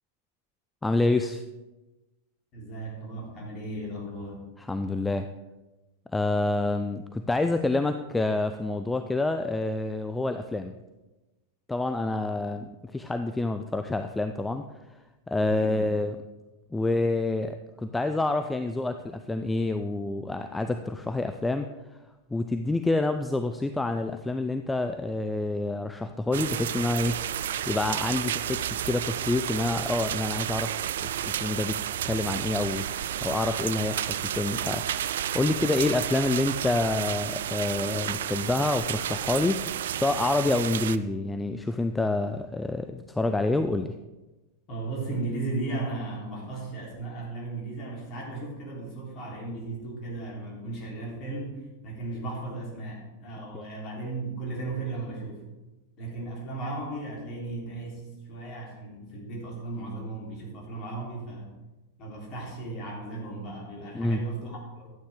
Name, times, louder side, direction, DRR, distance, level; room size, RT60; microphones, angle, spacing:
voice 1, 0.8-1.4 4.7-5.3 6.1-10.7 11.7-12.7 12.9-14.7 15.3-16.2 16.7-21.7 22.3-27.2 27.7-31.8 32.0-32.8 33.2-34.1 34.3-34.8 35.3-39.6 40.0-44.0 53.5-53.6 63.9-64.2, left 2 dB, 10° left, 8 dB, 0.4 m, -27 dB
voice 2, 2.5-4.4 12.4-12.5 15.5-15.9 44.7-55.4 56.0-61.6 62.0-64.9, right 2 dB, 35° left, -3 dB, 3.6 m, -36 dB
sound 1, 26.3-41.0, right 10 dB, 60° right, 0.3 m, -31 dB
12.5 x 8.7 x 3.6 m, 1.1 s
figure-of-eight pair, 90°, 0 cm